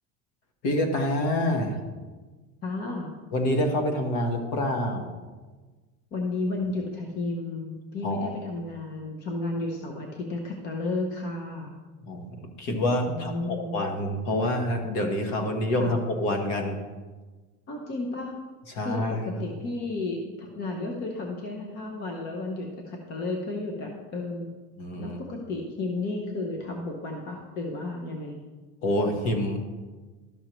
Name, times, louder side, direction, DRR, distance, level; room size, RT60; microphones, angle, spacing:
voice 1, 0.6-1.8 3.3-5.1 8.0-8.3 12.0-16.8 18.7-19.5 24.8-25.2 28.8-29.6, left 1 dB, 50° left, 4 dB, 1.3 m, -27 dB
voice 2, 2.6-3.1 6.1-11.7 13.1-13.8 15.8-15.9 17.7-18.4 18.8-24.5 25.0-28.4, left 2 dB, 25° left, 1 dB, 0.7 m, -32 dB
12.0 x 6.3 x 3.0 m, 1.3 s
cardioid pair, 165°, 37 cm